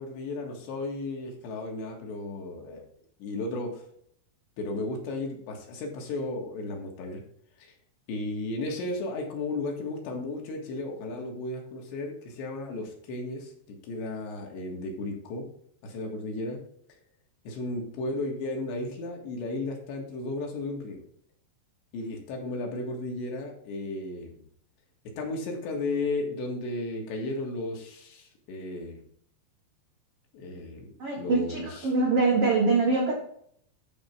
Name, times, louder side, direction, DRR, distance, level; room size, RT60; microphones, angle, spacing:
voice 1, 0.0-2.8 3.2-3.8 4.6-7.2 7.6-7.7 8.1-15.5 15.8-16.6 17.5-21.0 21.9-24.4 25.2-29.0 30.3-30.9 31.2-31.9, left 2 dB, 70° left, 1 dB, 3.8 m, -34 dB
voice 2, 31.0-33.1, right 3 dB, 75° right, -1 dB, 1.3 m, -24 dB
11.5 x 4.5 x 5.6 m, 0.64 s
omnidirectional pair, 5.4 m